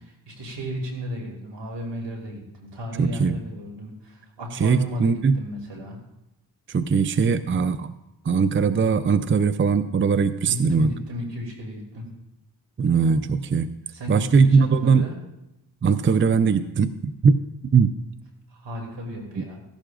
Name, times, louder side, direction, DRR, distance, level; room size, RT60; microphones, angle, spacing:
voice 1, 0.3-6.0 10.4-12.1 13.9-15.2 18.5-19.6, equal, 80° right, 1 dB, 2.8 m, -34 dB
voice 2, 3.0-3.4 4.5-5.3 6.7-7.9 8.2-10.9 12.8-13.7 14.1-15.0 15.8-17.4 17.7-17.9 19.4-19.5, right 5 dB, 30° right, 12 dB, 0.5 m, -20 dB
15.0 x 11.5 x 2.5 m, 0.89 s
cardioid pair, 55°, 43 cm